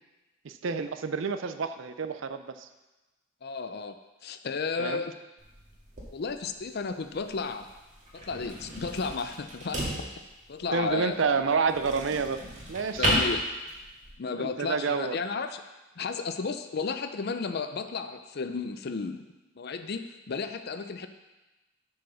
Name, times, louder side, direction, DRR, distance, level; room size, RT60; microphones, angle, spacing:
voice 1, 0.4-2.7 4.8-5.0 10.7-12.4 12.7-13.1 14.4-15.2, right 5 dB, 65° right, 9 dB, 0.5 m, -29 dB
voice 2, 3.4-4.0 4.2-5.1 6.1-7.7 8.1-10.1 10.5-11.3 13.0-13.4 14.2-15.6 16.0-19.3 19.6-21.1, left 4 dB, 50° left, 9 dB, 0.5 m, -33 dB
sound 1, 5.4-14.1, equal, 35° right, 1.9 m, -34 dB
8.1 x 4.8 x 6.3 m, 1.1 s
head